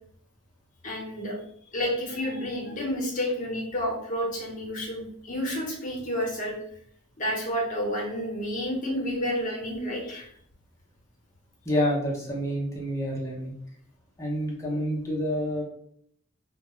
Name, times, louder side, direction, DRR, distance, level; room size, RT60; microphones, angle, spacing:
voice 1, 0.8-1.4 1.7-6.6 7.2-10.3, equal, 40° left, -2 dB, 0.8 m, -30 dB
voice 2, 11.6-13.5 14.2-15.6, equal, 15° left, -3 dB, 0.6 m, -28 dB
2.2 x 2.1 x 2.9 m, 0.66 s
head